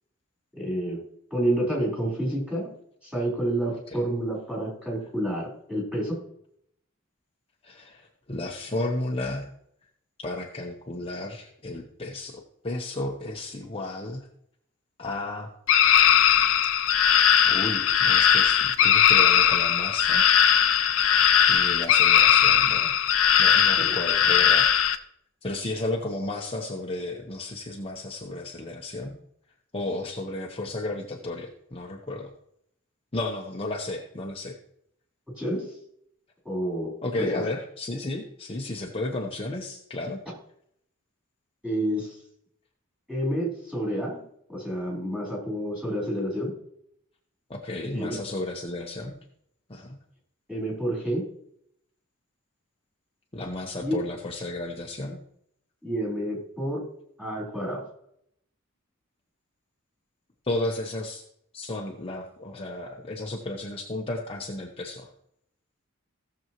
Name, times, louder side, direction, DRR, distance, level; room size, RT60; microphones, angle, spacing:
voice 1, 0.5-1.0 1.3-2.7 3.0-6.2 23.8-23.9 35.4-35.7 36.4-37.4 41.6-42.2 43.1-44.2 44.5-46.5 47.9-48.2 50.5-51.3 53.8-54.0 55.8-56.8 57.2-57.8, right 1 dB, 5° right, -4 dB, 4.1 m, -29 dB
voice 2, 3.7-4.0 7.6-9.5 10.2-14.3 15.0-15.5 17.5-20.4 21.5-22.9 23.4-24.7 25.4-29.1 29.7-32.3 33.1-34.6 37.0-40.2 47.5-49.2 49.7-50.0 53.3-55.2 60.4-61.2 61.5-65.1, left 2 dB, 25° left, 0 dB, 0.9 m, -33 dB
sound 1, 15.7-25.0, left 9 dB, 65° left, 0.7 m, -19 dB
17.0 x 7.0 x 3.0 m, 0.73 s
head